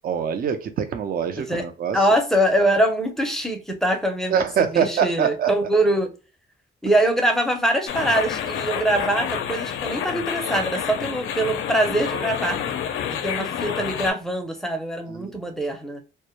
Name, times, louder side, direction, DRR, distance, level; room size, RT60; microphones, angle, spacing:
voice 1, 0.0-2.0 4.3-5.5 15.1-15.3, right 8 dB, 45° right, 0.5 m, -24 dB
voice 2, 1.9-4.4 4.7-6.1 6.8-12.6 13.1-16.0, right 1 dB, ahead, 0.6 m, -23 dB
sound 1, 7.9-14.1, left 8 dB, 80° left, 0.4 m, -29 dB
2.1 x 2.1 x 2.9 m
cardioid pair, 90°, 20 cm